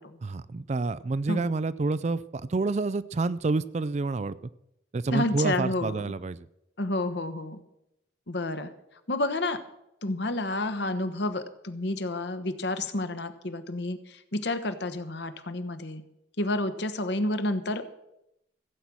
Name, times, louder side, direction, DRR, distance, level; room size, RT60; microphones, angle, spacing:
voice 1, 0.2-4.4 4.9-6.5, right 3 dB, 35° right, 17 dB, 0.4 m, -28 dB
voice 2, 5.1-6.0 6.8-7.6 8.3-8.7 9.1-9.6 10.0-16.0 16.4-18.0, left 2 dB, 60° left, 11 dB, 1.1 m, -30 dB
15.5 x 8.4 x 6.1 m, 0.84 s
head